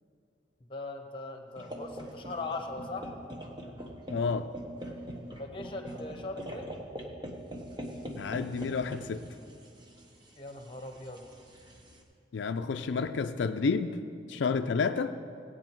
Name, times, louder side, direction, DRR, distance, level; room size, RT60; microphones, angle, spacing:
voice 1, 0.7-3.1 5.4-6.7 10.4-11.2, left 2 dB, 30° left, 4 dB, 1.1 m, -39 dB
sound 1, 1.6-12.0, equal, 25° right, 1.1 m, -43 dB
voice 2, 4.1-4.5 8.2-9.3 12.3-14.0 14.3-15.2, left 5 dB, 80° left, 8 dB, 0.4 m, -30 dB
17.0 x 8.8 x 4.5 m, 2.5 s
head